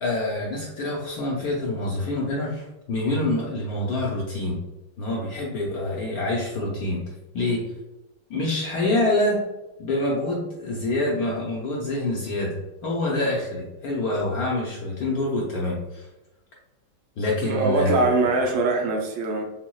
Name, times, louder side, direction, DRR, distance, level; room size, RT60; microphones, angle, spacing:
voice 1, 0.0-4.6 5.0-7.0 7.3-7.6 8.3-9.4 9.8-16.1 17.2-18.0 18.4-18.5, left 2 dB, 65° left, -3 dB, 0.9 m, -26 dB
voice 2, 17.4-19.4, right 3 dB, 75° right, 2 dB, 1.2 m, -22 dB
5.9 x 2.1 x 2.3 m, 0.99 s
omnidirectional pair, 2.2 m